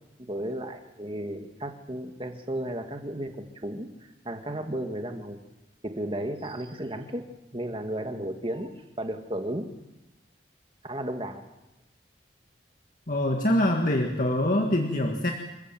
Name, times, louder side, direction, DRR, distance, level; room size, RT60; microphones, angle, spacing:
voice 1, 0.2-5.4 5.8-7.2 7.5-9.7 10.8-11.4, right 1 dB, 30° right, 5 dB, 2.1 m, -34 dB
voice 2, 13.1-15.3, left 1 dB, 50° left, 1 dB, 1.8 m, -24 dB
27.5 x 15.5 x 7.6 m, 0.98 s
head